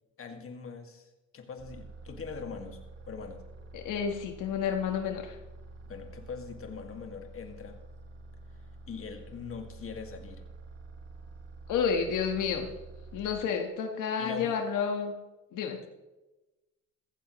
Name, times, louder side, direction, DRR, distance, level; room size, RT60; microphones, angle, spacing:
voice 1, 0.2-2.8 3.1-3.4 5.9-7.8 8.9-10.4 14.2-14.6, left 5 dB, 45° left, 4 dB, 2.1 m, -42 dB
sound 1, 1.6-13.4, right 3 dB, 50° right, 2.9 m, -48 dB
voice 2, 3.7-5.4 11.7-12.7 13.1-15.1 15.5-15.8, left 6 dB, 90° left, 4 dB, 1.5 m, -30 dB
15.5 x 14.5 x 3.1 m, 1.1 s
cardioid pair, 90°, 30 cm